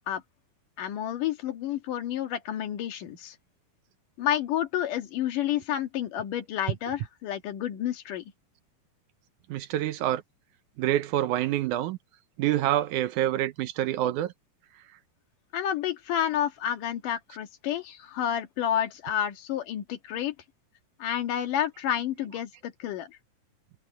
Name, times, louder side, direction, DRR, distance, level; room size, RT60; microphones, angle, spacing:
voice 1, 0.8-3.4 4.2-8.2 15.5-20.3 21.0-23.2, left 10 dB, 75° left, 3.2 m, -30 dB
voice 2, 9.5-10.2 10.8-12.0 12.4-14.3, right 13 dB, 75° right, 2.1 m, -26 dB
omnidirectional pair, 3.8 m